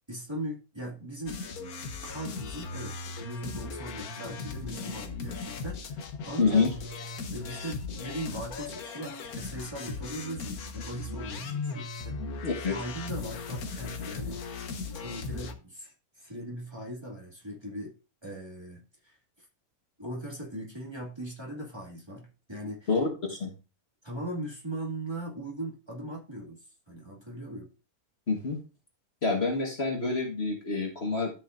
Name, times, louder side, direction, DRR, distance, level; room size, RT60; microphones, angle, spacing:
voice 1, 0.1-1.4 2.0-6.6 7.3-12.2 12.7-14.7 14.9-17.9 18.2-19.5 20.0-23.0 24.0-27.7, right 1 dB, 15° right, -3 dB, 2.3 m, -39 dB
sound 1, 1.3-15.5, left 4 dB, 85° left, 1.5 m, -38 dB
voice 2, 6.4-6.7 12.4-12.8 22.9-23.5 28.3-28.6 29.2-31.3, left 4 dB, 45° left, 1 dB, 1.8 m, -27 dB
13.0 x 5.5 x 2.6 m, 0.33 s
omnidirectional pair, 1.5 m